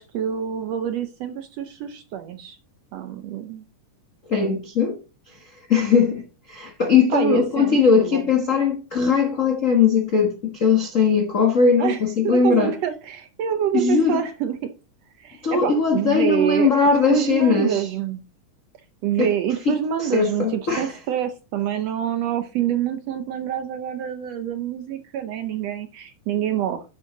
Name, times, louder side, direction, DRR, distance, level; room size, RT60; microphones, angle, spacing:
voice 1, 0.0-2.6 2.9-3.6 7.1-8.2 11.8-14.7 15.2-16.7 17.1-18.2 19.0-26.8, right 10 dB, 75° right, 1.6 m, -26 dB
voice 2, 4.3-5.0 5.7-12.7 13.7-14.2 15.4-17.9 19.2-19.3 19.6-21.0, left 5 dB, 60° left, 0.8 m, -20 dB
10.5 x 7.7 x 3.9 m
omnidirectional pair, 3.7 m